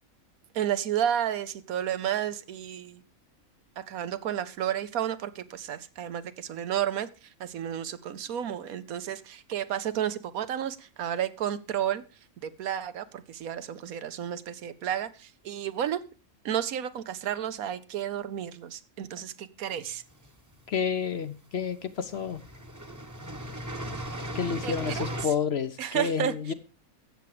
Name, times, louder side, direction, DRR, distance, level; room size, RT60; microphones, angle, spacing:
voice 1, 0.5-3.0 3.8-12.0 12.4-16.0 16.4-20.0 24.6-25.2 25.8-26.5, right 10 dB, 80° right, 1.3 m, -32 dB
sound 1, 19.9-20.7 21.6-21.7 22.0-25.3, equal, 15° right, 1.0 m, -37 dB
voice 2, 20.7-22.4 24.3-26.5, left 6 dB, 55° left, 0.9 m, -30 dB
15.0 x 7.0 x 4.9 m
omnidirectional pair, 1.5 m